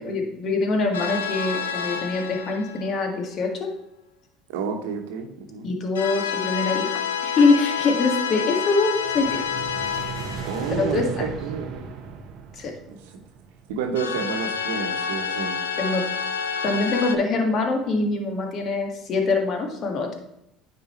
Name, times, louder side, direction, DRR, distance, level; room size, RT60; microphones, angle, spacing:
voice 1, 0.0-3.7 5.6-6.9 7.2-9.4 10.7-11.3 12.5-12.7 15.8-16.0 16.6-20.1, left 3 dB, 50° left, 3 dB, 1.6 m, -24 dB
sound 1, 0.9-3.1 6.0-11.2 14.0-17.2, left 7 dB, 85° left, 0.5 m, -29 dB
voice 2, 4.5-5.7 10.4-11.9 12.9-13.0 13.7-15.5, right 5 dB, 75° right, 5 dB, 1.0 m, -30 dB
sound 2, 8.9-14.1, right 7 dB, 55° right, 0.7 m, -36 dB
9.4 x 3.9 x 4.3 m, 0.81 s
hypercardioid pair, 70°, 0 cm